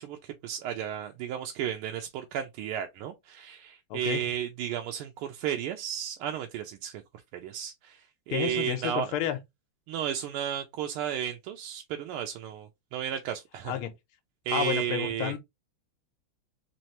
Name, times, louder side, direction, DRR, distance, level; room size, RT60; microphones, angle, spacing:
voice 1, 0.0-7.0 7.3-9.1 9.9-13.8 14.4-15.3, right 10 dB, 85° right, 1.5 m, -33 dB
voice 2, 3.9-4.2 8.3-9.4 13.7-13.9 14.5-15.4, left 11 dB, 90° left, 1.6 m, -30 dB
3.9 x 3.1 x 2.8 m
omnidirectional pair, 2.3 m